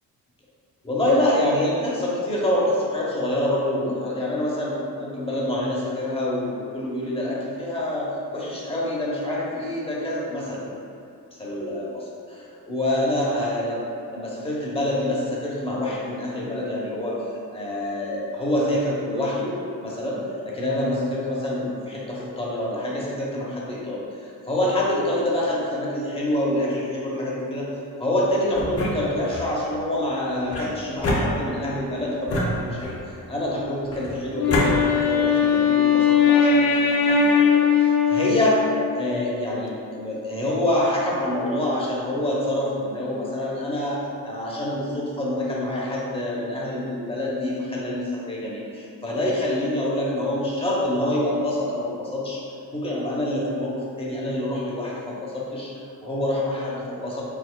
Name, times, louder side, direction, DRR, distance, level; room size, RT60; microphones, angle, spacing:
voice 1, 0.8-10.6 11.4-13.8 14.1-17.2 17.5-19.5 19.8-20.2 20.5-27.7 28.0-38.6 38.9-52.4 52.7-55.7 56.0-57.2, left 1 dB, 15° left, -5 dB, 0.9 m, -26 dB
sound 1, 28.5-29.5 30.5-31.8 32.3-33.2 33.9-34.7, left 1 dB, 40° left, 0.8 m, -27 dB
Wind instrument woodwind instrument, 34.3-39.1, left 6 dB, 85° left, 0.5 m, -19 dB
4.8 x 4.1 x 2.2 m, 2.7 s
cardioid pair, 135°, 35 cm